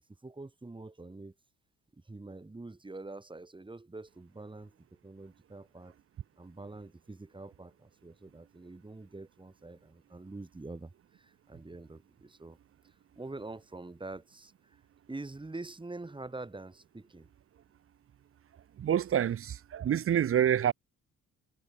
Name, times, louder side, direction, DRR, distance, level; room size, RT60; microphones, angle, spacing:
voice 1, 0.2-1.3 2.1-4.7 5.0-5.9 6.4-10.9 11.2-12.6 13.2-14.5 15.1-17.3, right 2 dB, 15° right, 3.6 m, -45 dB
voice 2, 18.8-20.7, right 10 dB, 45° right, 0.8 m, -27 dB
cardioid pair, 90°, 30 cm